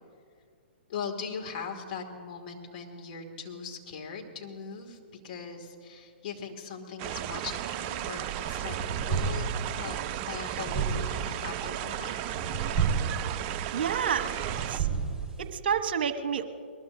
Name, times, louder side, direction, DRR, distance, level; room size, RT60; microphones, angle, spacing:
voice 1, 0.9-9.5 9.7-12.6, left 5 dB, 50° left, 2 dB, 2.2 m, -40 dB
sound 1, 7.0-14.8, right 12 dB, 30° right, 0.4 m, -35 dB
sound 2, 8.1-15.5, right 6 dB, 5° right, 4.3 m, -33 dB
voice 2, 13.7-14.3 14.7-14.9 15.4-16.4, right 7 dB, 60° right, 9 dB, 1.0 m, -29 dB
22.0 x 20.0 x 2.7 m, 2.1 s
figure-of-eight pair, 120°, 6 cm